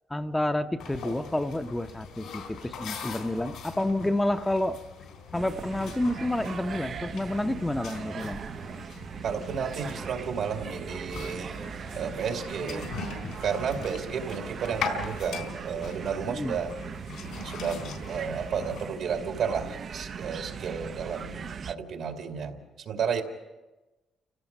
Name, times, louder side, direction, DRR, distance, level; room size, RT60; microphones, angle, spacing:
voice 1, 0.1-4.8 5.3-8.4 16.3-16.6, left 1 dB, 10° left, 7 dB, 0.7 m, -29 dB
sound 1, 0.8-18.9, left 5 dB, 80° left, 3.6 m, -41 dB
sound 2, 5.3-21.8, right 6 dB, 55° right, 0.6 m, -39 dB
voice 2, 9.2-11.5 12.0-12.9 13.4-16.7 17.4-23.2, right 6 dB, 75° right, 4 dB, 2.5 m, -32 dB
30.0 x 16.5 x 5.5 m, 1.1 s
cardioid pair, 90°, 0 cm